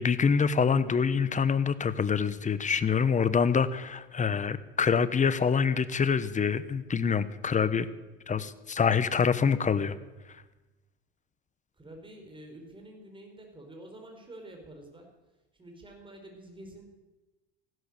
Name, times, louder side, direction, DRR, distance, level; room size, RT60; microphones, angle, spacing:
voice 1, 0.0-7.9 8.3-9.9, left 6 dB, 25° left, 15 dB, 1.0 m, -26 dB
voice 2, 11.8-15.2 15.6-16.8, right 1 dB, 15° right, 2 dB, 4.9 m, -48 dB
15.5 x 12.5 x 6.8 m, 1.1 s
supercardioid pair, 90°, 32 cm